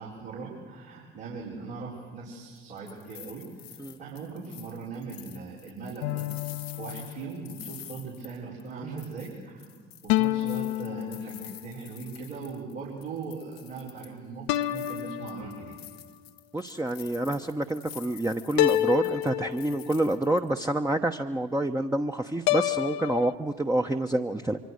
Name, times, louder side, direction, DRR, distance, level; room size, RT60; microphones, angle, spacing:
voice 1, 0.0-6.3 6.7-15.8, right 4 dB, 75° right, -7 dB, 5.1 m, -40 dB
sound 1, 2.6-8.7 9.0-12.7 13.0-14.2 14.5-20.6, left 11 dB, 80° left, 1.2 m, -48 dB
sound 2, 6.0-7.7 10.1-11.8 14.5-16.0 18.6-20.2 22.5-23.3, left 15 dB, 65° left, 0.8 m, -29 dB
voice 2, 16.5-24.6, right 1 dB, 10° right, 4 dB, 1.0 m, -27 dB
25.0 x 24.5 x 6.6 m, 1.5 s
figure-of-eight pair, 55°, 30 cm